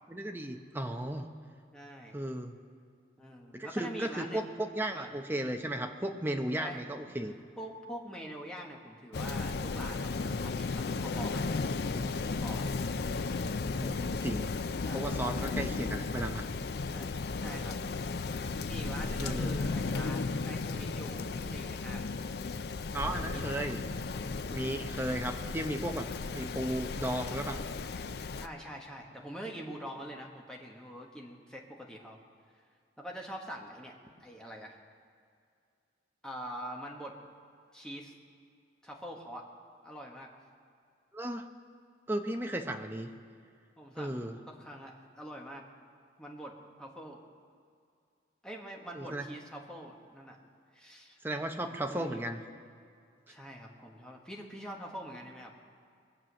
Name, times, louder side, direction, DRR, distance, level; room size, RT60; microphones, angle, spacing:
voice 1, 0.1-1.3 2.1-2.5 3.5-7.3 13.8-14.5 14.9-16.4 19.2-19.5 22.9-23.8 24.5-27.6 41.1-41.5 42.1-43.1 44.0-44.4 48.9-49.2 51.2-52.4, right 1 dB, 10° right, 4 dB, 0.8 m, -35 dB
voice 2, 1.7-2.1 3.2-4.6 4.9-5.1 6.6-6.8 7.6-12.7 14.8-15.1 15.4-15.8 16.8-17.1 17.4-18.0 18.6-22.1 23.1-23.6 24.5-24.9 28.4-32.2 33.0-33.9 34.2-34.8 36.2-37.1 37.7-38.1 38.8-39.5 39.8-40.3 43.8-45.7 46.2-47.2 48.4-50.4 50.7-51.2 51.5-52.3 53.3-55.5, equal, 5° left, -1 dB, 1.4 m, -45 dB
Rain, 9.1-28.5, left 4 dB, 60° left, 0.5 m, -35 dB
22.0 x 7.5 x 6.3 m, 2.3 s
head